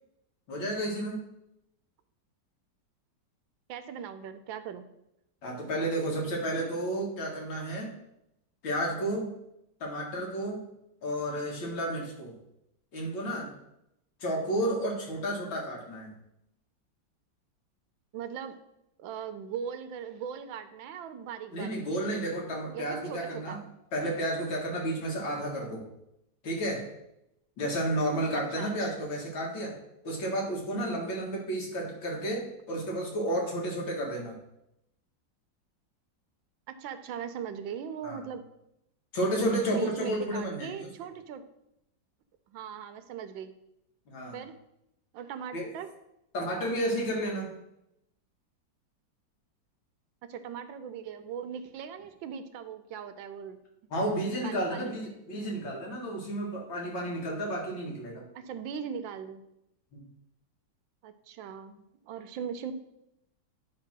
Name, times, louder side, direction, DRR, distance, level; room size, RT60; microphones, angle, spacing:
voice 1, 0.5-1.2 5.4-7.9 8.6-9.4 9.8-10.6 11.0-12.4 12.9-13.5 14.2-16.1 21.5-23.6 23.9-25.9 26.4-26.9 27.6-29.8 30.0-34.4 38.0-38.2 39.1-40.9 44.1-44.4 45.5-45.7 46.3-47.5 53.9-58.2 59.9-60.0, right 1 dB, 90° left, -1 dB, 2.6 m, -32 dB
voice 2, 3.7-4.9 18.1-18.6 19.0-21.8 22.7-23.6 28.5-28.7 36.7-38.4 39.4-41.4 42.5-43.5 44.3-44.5 45.1-45.9 50.3-53.6 54.4-55.0 58.3-59.4 61.0-62.7, right 8 dB, 85° right, 9 dB, 1.5 m, -39 dB
10.0 x 3.5 x 6.0 m, 0.83 s
omnidirectional pair, 2.0 m